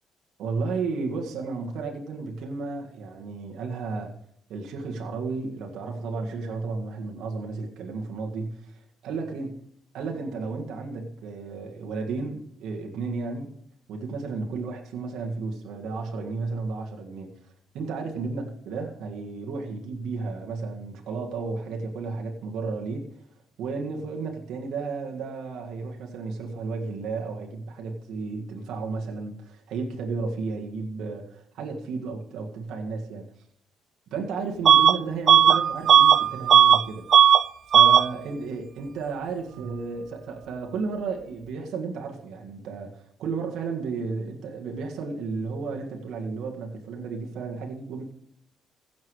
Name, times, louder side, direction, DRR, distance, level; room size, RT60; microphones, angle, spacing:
voice 1, 0.4-4.1 4.5-9.5 9.9-13.5 13.9-17.3 17.7-23.0 23.6-33.2 34.1-37.3 37.7-48.0, right 4 dB, 85° right, 1 dB, 1.9 m, -33 dB
Bus / Alarm, 34.7-35.0 35.3-36.8 37.1-37.4 37.7-38.1, right 9 dB, 60° right, 0.6 m, -15 dB
16.0 x 7.4 x 4.8 m, 0.68 s
cardioid pair, 90°, 0 cm